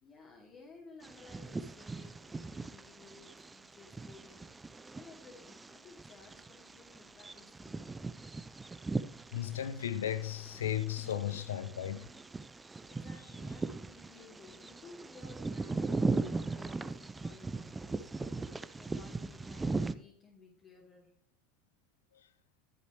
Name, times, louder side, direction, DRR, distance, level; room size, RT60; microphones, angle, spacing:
voice 1, 0.0-8.0 12.9-18.5 18.8-21.1, left 3 dB, 40° left, 2.9 m, -57 dB
Bird vocalization bird call bird song, 1.0-19.9, right 3 dB, 15° right, 0.6 m, -39 dB
voice 2, 9.3-12.1, left 10 dB, 85° left, 0.7 m, -35 dB
11.0 x 8.3 x 3.1 m
hypercardioid pair, 85°, 0 cm